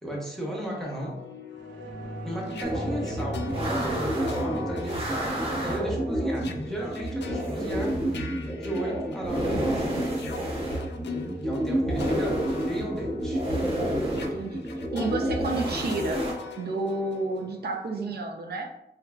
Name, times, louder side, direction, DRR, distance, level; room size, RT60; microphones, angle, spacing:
voice 1, 0.0-1.2 2.2-8.2 8.5-9.9 11.4-13.5, right 1 dB, ahead, -3 dB, 0.8 m, -35 dB
sound 1, 0.8-9.6 10.1-17.9, left 6 dB, 75° left, 0.4 m, -41 dB
sound 2, 1.5-10.5 10.9-11.0, right 1 dB, 80° right, 1.0 m, -40 dB
sound 3, 2.6-16.3, right 1 dB, 30° right, 0.8 m, -29 dB
voice 2, 14.2-14.6 14.9-16.2 16.6-18.7, right 3 dB, 65° right, 2 dB, 0.5 m, -30 dB
4.3 x 2.5 x 2.3 m, 0.83 s
wide cardioid pair, 140°, 18 cm